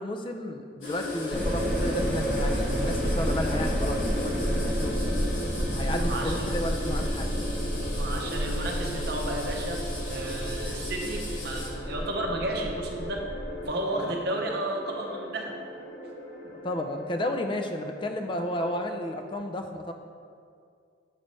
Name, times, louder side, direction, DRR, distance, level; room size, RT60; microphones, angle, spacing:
voice 1, 0.0-5.0 5.7-7.3 14.0-14.2 16.6-19.9, left 1 dB, 25° left, 5 dB, 0.4 m, -33 dB
sound 1, 0.8-11.7, left 2 dB, 85° left, 1.5 m, -42 dB
sound 2, 0.8-19.4, left 1 dB, 50° left, 0.8 m, -38 dB
sound 3, 1.3-13.6, equal, 5° left, 1.1 m, -30 dB
voice 2, 5.9-6.5 7.9-13.2 13.6-15.5, right 1 dB, 55° right, 1 dB, 0.7 m, -33 dB
7.3 x 3.2 x 5.2 m, 2.3 s
head